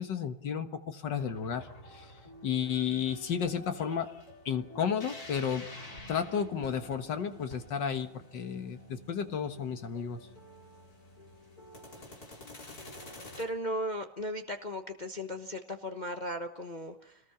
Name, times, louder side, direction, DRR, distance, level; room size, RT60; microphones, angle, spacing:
voice 1, 0.0-2.1 2.4-4.1 4.5-5.7 6.1-10.2, left 7 dB, 75° left, 7 dB, 2.2 m, -32 dB
sound 1, 1.2-13.4, left 1 dB, 55° left, 4.6 m, -49 dB
voice 2, 13.4-17.2, equal, 30° left, 4 dB, 1.1 m, -36 dB
26.5 x 19.0 x 5.9 m, 0.76 s
omnidirectional pair, 2.0 m